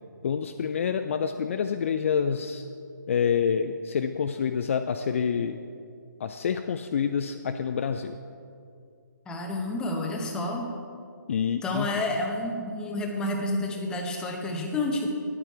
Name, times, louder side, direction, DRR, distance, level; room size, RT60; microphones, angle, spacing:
voice 1, 0.2-2.6 3.1-5.6 6.2-8.2 11.3-11.9, left 7 dB, 40° left, 7 dB, 0.4 m, -27 dB
voice 2, 9.3-10.7 11.6-15.1, left 2 dB, 5° left, 1 dB, 0.9 m, -29 dB
10.0 x 8.9 x 4.7 m, 2.3 s
figure-of-eight pair, 150°, 10 cm